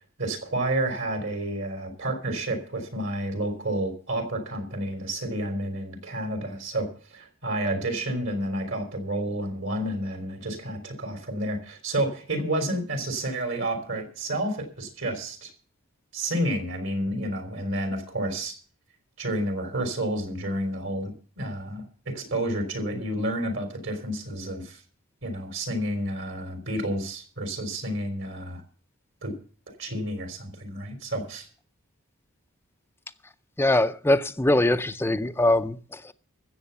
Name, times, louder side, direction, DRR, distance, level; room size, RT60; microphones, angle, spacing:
voice 1, 0.2-15.5 16.1-18.5 19.2-24.8 25.2-28.6 29.2-29.3 29.8-31.5, right 1 dB, 60° right, 3.5 m, -30 dB
voice 2, 33.6-36.1, left 1 dB, 10° left, 0.5 m, -22 dB
14.0 x 8.0 x 6.9 m
head